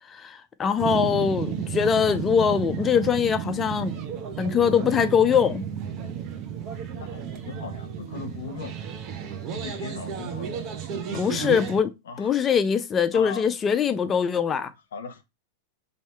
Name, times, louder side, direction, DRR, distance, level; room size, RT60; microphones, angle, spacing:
voice 1, 0.1-3.9 4.4-5.6 11.1-11.9 12.2-14.7, left 7 dB, 25° left, 0.5 m, -22 dB
sound 1, 0.8-11.8, right 8 dB, 40° right, 0.9 m, -33 dB
voice 2, 6.7-8.7 9.5-10.6 11.1-11.6 12.0-12.3 13.1-13.5 14.9-15.2, left 5 dB, 85° left, 0.8 m, -39 dB
3.5 x 2.7 x 4.4 m
hypercardioid pair, 120°, 0 cm